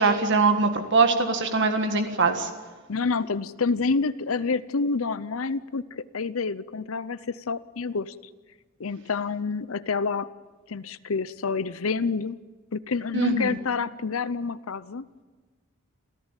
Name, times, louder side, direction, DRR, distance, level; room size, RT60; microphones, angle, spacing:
voice 1, 0.0-2.5 13.1-13.5, right 3 dB, 60° right, 6 dB, 1.7 m, -22 dB
voice 2, 2.9-8.1 8.8-10.3 10.7-12.4 12.7-15.0, left 4 dB, 75° left, 15 dB, 0.7 m, -28 dB
28.0 x 14.5 x 9.1 m, 1.3 s
head